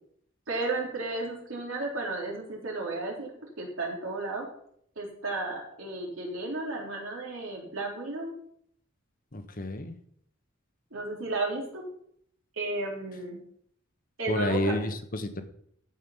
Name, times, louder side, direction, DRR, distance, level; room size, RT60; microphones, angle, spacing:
voice 1, 0.5-3.3 3.6-4.5 4.9-8.3 10.9-11.9 12.5-13.4 14.2-14.7, right 2 dB, 75° right, -1 dB, 3.5 m, -33 dB
voice 2, 9.3-10.0 14.3-15.4, left 1 dB, 45° left, 7 dB, 1.2 m, -30 dB
14.5 x 5.3 x 5.6 m, 0.66 s
head